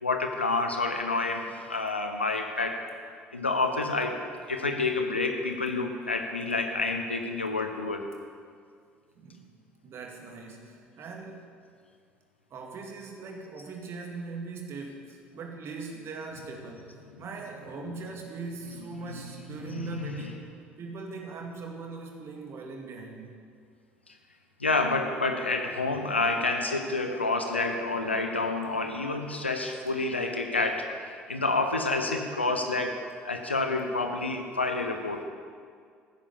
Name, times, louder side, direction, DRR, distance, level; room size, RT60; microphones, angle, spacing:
voice 1, 0.0-2.9 3.3-8.1 17.8-17.9 19.0-19.3 19.6-20.3 24.1-24.2 24.6-35.2, left 3 dB, 85° left, 5 dB, 1.0 m, -29 dB
voice 2, 9.2-9.6 9.8-11.5 12.5-20.4 20.8-23.4, right 4 dB, 45° right, 2 dB, 2.4 m, -40 dB
15.0 x 9.9 x 7.0 m, 2.1 s
figure-of-eight pair, 55°, 6 cm